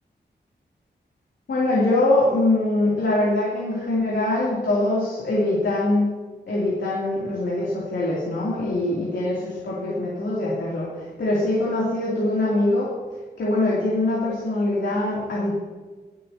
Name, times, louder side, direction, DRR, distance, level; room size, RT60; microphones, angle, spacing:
voice 1, 1.5-6.1 6.5-12.9 13.4-15.6, left 2 dB, 80° left, -6 dB, 3.0 m, -23 dB
21.5 x 8.6 x 2.9 m, 1.4 s
wide cardioid pair, 155°, 18 cm